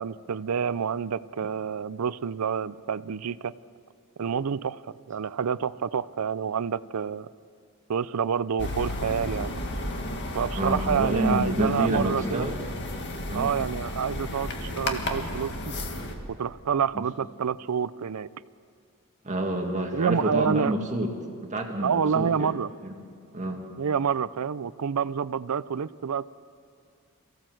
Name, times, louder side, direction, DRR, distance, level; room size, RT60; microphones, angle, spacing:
voice 1, 0.0-3.5 4.2-7.3 7.9-9.5 10.3-12.5 13.3-15.7 16.3-18.3 19.9-20.7 21.8-22.7 23.8-26.3, right 7 dB, 85° right, 18 dB, 0.5 m, -28 dB
sound 1, 8.6-16.1, left 1 dB, 55° left, 1.9 m, -33 dB
voice 2, 10.6-12.6 13.3-13.5 16.9-17.0 19.2-21.1 21.4-22.5 22.8-22.9 23.3-23.6, right 1 dB, 35° right, 2 dB, 2.0 m, -28 dB
23.0 x 15.5 x 7.7 m, 2.2 s
head